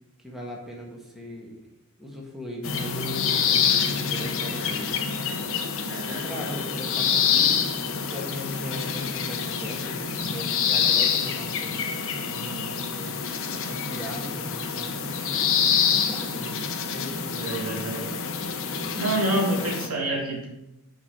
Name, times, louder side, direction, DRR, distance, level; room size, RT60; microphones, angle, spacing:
voice 1, 0.2-1.7 2.0-4.9 6.1-7.7 8.1-11.8 12.3-13.2 13.5-15.5 15.9-16.6 16.9-18.2, equal, ahead, -3 dB, 1.6 m, -39 dB
sound 1, 2.6-19.9, left 6 dB, 60° left, 1.0 m, -26 dB
voice 2, 5.9-6.2 17.4-18.0 18.9-20.5, right 1 dB, 75° right, -2 dB, 2.6 m, -27 dB
8.5 x 5.2 x 6.1 m, 0.90 s
head